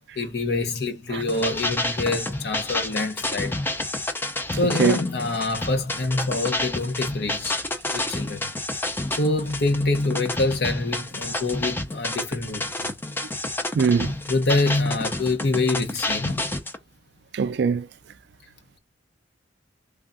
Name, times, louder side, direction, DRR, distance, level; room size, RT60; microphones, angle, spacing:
voice 1, 0.2-3.6 4.6-7.6 7.9-8.4 9.1-12.9 14.3-16.5, left 2 dB, 55° left, 0.8 m, -25 dB
sound 1, 1.2-16.8, left 2 dB, 10° left, 0.5 m, -29 dB
voice 2, 13.7-14.1 17.3-17.9, right 5 dB, 60° right, 0.3 m, -21 dB
3.5 x 2.3 x 3.8 m
head